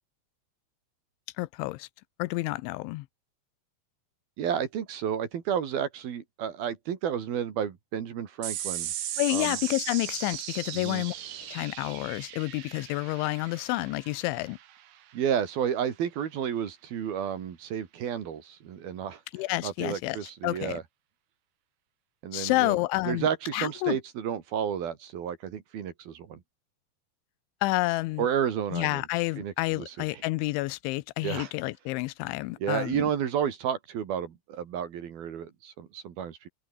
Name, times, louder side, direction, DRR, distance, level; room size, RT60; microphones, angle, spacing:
voice 1, 1.4-1.9 2.2-3.1 9.2-14.6 19.3-20.2 20.4-20.8 22.3-23.3 23.5-24.0 27.6-28.3 28.7-33.1, left 20 dB, 85° left, 3.1 m, -29 dB
voice 2, 4.4-8.9 9.3-9.6 10.7-11.0 15.1-19.2 19.6-20.8 22.2-22.8 23.0-26.4 28.2-29.1 29.4-30.2 31.2-31.5 32.6-36.4, right 8 dB, 60° right, 3.9 m, -31 dB
sound 1, 8.4-15.2, right 12 dB, 90° right, 4.5 m, -37 dB
omnidirectional pair, 5.3 m